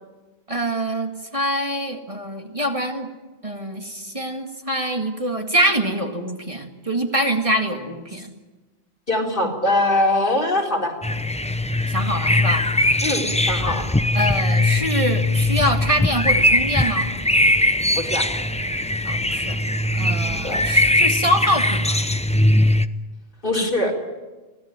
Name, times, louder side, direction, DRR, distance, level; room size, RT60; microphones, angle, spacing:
voice 1, 0.5-3.1 3.4-8.3 11.9-12.7 13.5-13.8 14.1-17.1 19.0-19.6 19.9-22.0, equal, 30° right, 3 dB, 2.1 m, -24 dB
voice 2, 9.1-10.9 13.0-13.9 17.9-18.3 20.4-20.7 23.4-23.9, left 1 dB, 55° left, 2 dB, 4.1 m, -22 dB
sound 1, 11.0-22.9, left 1 dB, 10° left, 0.5 m, -20 dB
24.0 x 17.0 x 9.0 m, 1.2 s
omnidirectional pair, 1.1 m